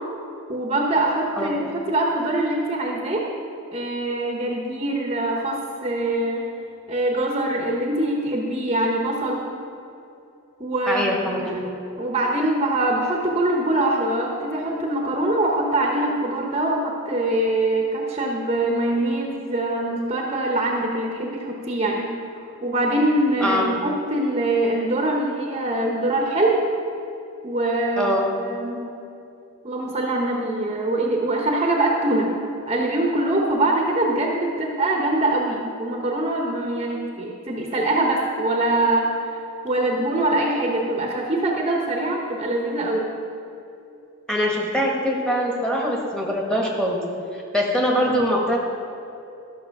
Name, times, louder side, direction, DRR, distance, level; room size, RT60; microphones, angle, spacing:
voice 1, 0.5-3.2 3.7-6.4 6.9-9.4 10.6-11.5 12.0-22.1 22.6-26.6 27.4-28.8 29.6-32.3 32.7-39.4 39.6-43.1, right 1 dB, 25° right, 0 dB, 0.9 m, -23 dB
voice 2, 10.9-11.6 23.4-23.7 28.0-28.3 44.3-47.0 47.3-48.6, equal, 5° left, -2 dB, 1.4 m, -23 dB
13.0 x 6.6 x 5.8 m, 2.7 s
head